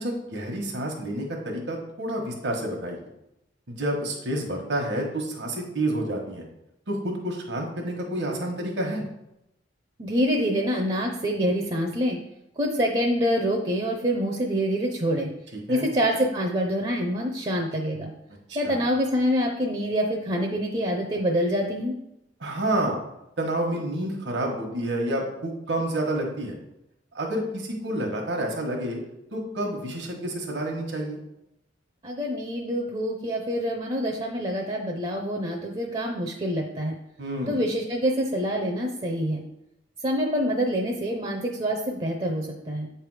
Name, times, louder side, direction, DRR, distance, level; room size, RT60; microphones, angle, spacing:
voice 1, 0.0-3.0 3.8-6.5 6.9-9.0 15.5-15.9 18.5-18.8 22.4-23.0 23.4-26.6 27.1-29.0 29.3-31.2 37.2-37.6, right 1 dB, 70° right, 0 dB, 1.2 m, -29 dB
voice 2, 10.0-12.2 12.6-15.3 15.7-18.1 18.5-21.9 32.0-37.0 37.5-39.4 40.0-42.9, equal, 30° right, 1 dB, 0.6 m, -26 dB
8.1 x 3.4 x 4.8 m, 0.86 s
head